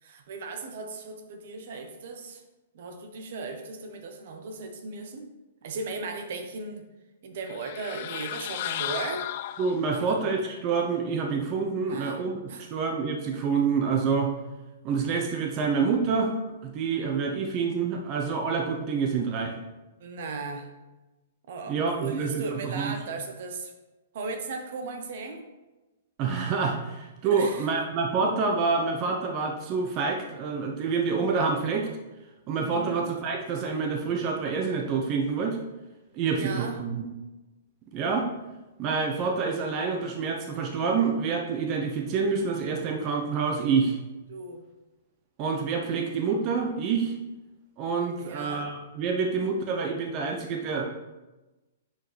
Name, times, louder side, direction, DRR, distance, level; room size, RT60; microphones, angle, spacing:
voice 1, 0.0-2.4 2.7-5.3 5.6-6.8 7.2-9.3 9.9-10.1 11.8-12.2 12.5-12.7 20.0-20.7 21.5-23.7 24.1-25.5 27.2-27.7 28.2-28.4 32.6-33.0 36.3-36.8 44.3-44.6 48.2-48.7, right 3 dB, 60° right, 5 dB, 1.1 m, -37 dB
sound 1, 7.5-10.1, left 13 dB, 55° left, 0.3 m, -34 dB
voice 2, 9.6-14.3 14.8-16.3 16.6-19.5 21.7-22.9 26.2-31.9 32.5-35.6 36.1-37.1 37.9-38.3 38.8-44.0 45.4-47.1 47.8-50.8, right 5 dB, 35° right, 2 dB, 1.0 m, -27 dB
10.5 x 4.9 x 3.4 m, 1.1 s
hypercardioid pair, 120°, 0 cm